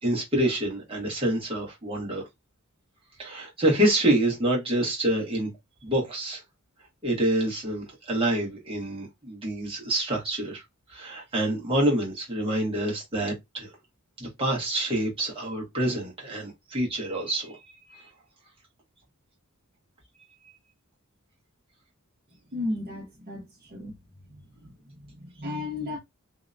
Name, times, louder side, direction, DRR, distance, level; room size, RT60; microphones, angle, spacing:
voice 1, 0.0-2.3 3.2-5.5 5.8-6.4 7.0-10.6 10.9-13.7 14.2-17.6 17.9-18.0, right 1 dB, 25° right, 1.1 m, -27 dB
voice 2, 22.5-24.0 24.3-26.0, left 2 dB, 45° right, 0.8 m, -35 dB
2.7 x 2.1 x 2.5 m
head